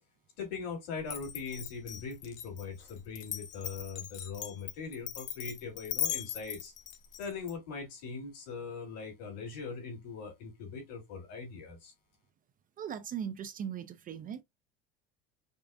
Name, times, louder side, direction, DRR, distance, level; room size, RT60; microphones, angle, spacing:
voice 1, 0.4-6.7 7.2-11.9, left 5 dB, 75° left, 2.9 m, -41 dB
Glass, 1.0-7.5, left 10 dB, 40° left, 0.7 m, -39 dB
voice 2, 12.8-14.4, right 8 dB, 30° right, 0.4 m, -39 dB
5.3 x 2.4 x 2.4 m
supercardioid pair, 115°, 29 cm